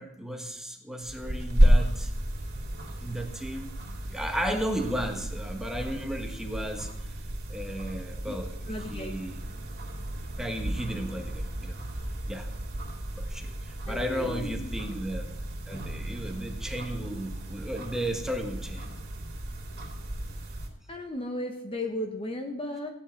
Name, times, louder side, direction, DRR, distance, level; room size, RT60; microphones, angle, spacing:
voice 1, 0.0-2.1 3.0-3.7 4.0-6.9 7.5-9.3 10.4-11.8 12.3-12.5 13.2-15.3 15.7-18.9, equal, ahead, 3 dB, 1.4 m, -34 dB
sound 1, 1.0-20.7, equal, 50° right, 2.7 m, -32 dB
voice 2, 8.7-9.2 13.9-14.7 20.9-22.9, left 1 dB, 25° left, 4 dB, 1.0 m, -35 dB
16.5 x 10.0 x 4.5 m, 0.84 s
head